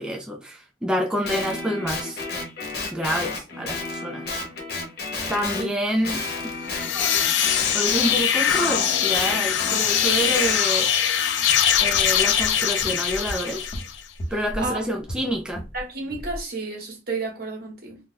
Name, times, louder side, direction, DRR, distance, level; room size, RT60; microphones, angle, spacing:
voice 1, 0.0-2.2 2.9-4.4 5.3-6.3 6.9-7.2 7.7-10.9 11.8-13.7 14.3-15.6, equal, 5° right, 0.4 m, -27 dB
Guitar, 1.2-5.7 6.0-10.6, left 3 dB, 60° left, 0.9 m, -32 dB
sound 1, 6.6-14.0, left 9 dB, 75° left, 0.4 m, -22 dB
sound 2, 11.7-15.8 16.1-16.4, equal, 35° left, 1.0 m, -36 dB
voice 2, 15.7-18.0, right 3 dB, 60° right, 1.2 m, -31 dB
2.6 x 2.2 x 3.8 m
head